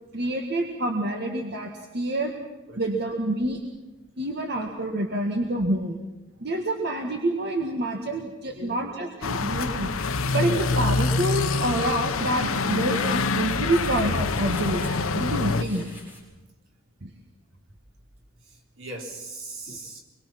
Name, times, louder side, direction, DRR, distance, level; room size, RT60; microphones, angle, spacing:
voice 1, 0.1-2.3 2.8-3.6 4.2-6.0 6.4-9.9 10.3-15.8 17.0-17.1 19.7-19.8, right 1 dB, 50° right, 2 dB, 1.9 m, -27 dB
sound 1, 9.2-15.6, left 3 dB, 90° left, 1.0 m, -25 dB
sound 2, 11.7-16.2, left 2 dB, 10° right, 7.5 m, -47 dB
voice 2, 18.4-20.0, right 2 dB, 75° right, 1 dB, 4.1 m, -39 dB
26.0 x 22.5 x 6.0 m, 1.1 s
head